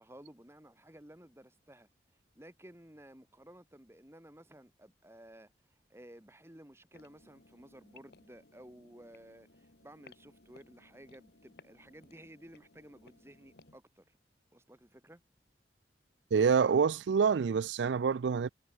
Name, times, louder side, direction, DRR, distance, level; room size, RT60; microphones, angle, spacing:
voice 1, 0.0-1.9 2.4-14.2 14.5-15.2, right 1 dB, 15° right, 1.8 m, -55 dB
sound 1, 6.9-13.8, left 3 dB, 65° left, 1.8 m, -61 dB
voice 2, 16.3-18.5, right 6 dB, 85° right, 0.4 m, -27 dB
head